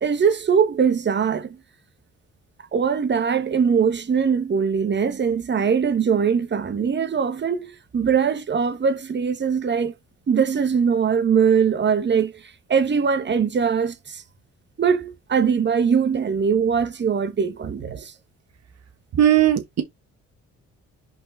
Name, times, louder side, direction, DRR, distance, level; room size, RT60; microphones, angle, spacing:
voice 1, 0.0-1.6 2.7-9.9 10.3-14.2 14.8-18.1, right 6 dB, 35° right, 1.2 m, -21 dB
voice 2, 19.1-19.8, right 11 dB, 60° right, 1.3 m, -18 dB
5.4 x 4.7 x 4.0 m
cardioid pair, 90°, 30 cm